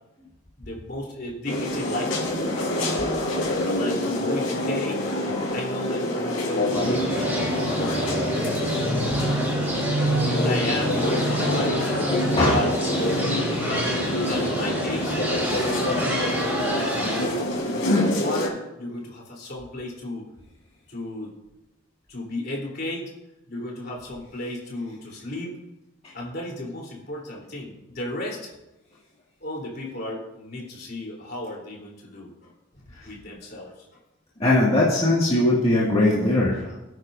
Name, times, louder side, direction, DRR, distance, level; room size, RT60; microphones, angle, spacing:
voice 1, 0.6-3.2 3.7-5.1 5.5-8.8 10.2-12.1 12.5-12.7 13.2-15.2 15.5-20.2 20.9-21.3 22.1-23.1 23.5-25.6 26.1-28.5 29.4-32.5 32.8-33.7, left 1 dB, 50° left, -2 dB, 3.4 m, -34 dB
sound 1, 1.5-18.5, left 1 dB, 85° left, 3.5 m, -27 dB
sound 2, 6.7-17.2, right 1 dB, 10° right, 3.6 m, -27 dB
voice 2, 34.4-36.9, left 1 dB, 30° left, -7 dB, 2.0 m, -20 dB
19.0 x 9.6 x 2.6 m, 0.96 s
head